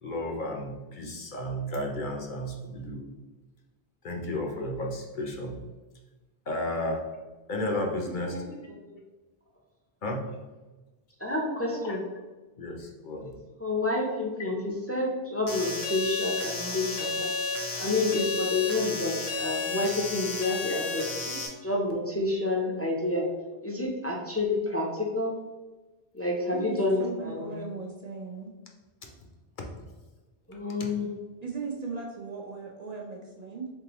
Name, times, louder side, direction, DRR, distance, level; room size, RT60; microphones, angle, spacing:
voice 1, 0.0-3.0 4.0-5.5 6.5-7.2 7.5-8.7 10.0-10.3 11.8-12.0 12.6-13.3, left 1 dB, 55° left, 1 dB, 0.7 m, -33 dB
voice 2, 11.2-12.0 13.2-13.3 13.6-17.3 17.8-23.2 23.6-25.3 26.1-27.5 30.5-31.1, left 2 dB, 20° left, -2 dB, 0.4 m, -29 dB
sound 1, 15.5-21.5, left 4 dB, 85° left, 1.1 m, -32 dB
voice 3, 26.5-28.5 31.4-33.7, right 4 dB, 50° right, -1 dB, 0.5 m, -37 dB
3.7 x 3.6 x 2.9 m, 1.2 s
omnidirectional pair, 1.1 m